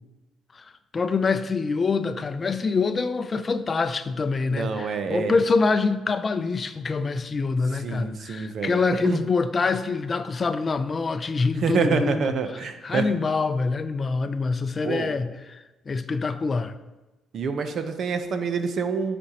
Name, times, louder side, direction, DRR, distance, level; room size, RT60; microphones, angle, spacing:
voice 1, 0.9-12.4 12.8-16.8, left 4 dB, 35° left, 0.5 m, -25 dB
voice 2, 4.5-5.3 7.8-9.2 11.6-13.1 14.8-15.1 17.3-19.2, right 5 dB, 60° right, 0.7 m, -27 dB
12.5 x 4.3 x 2.9 m
cardioid pair, 90°, 0 cm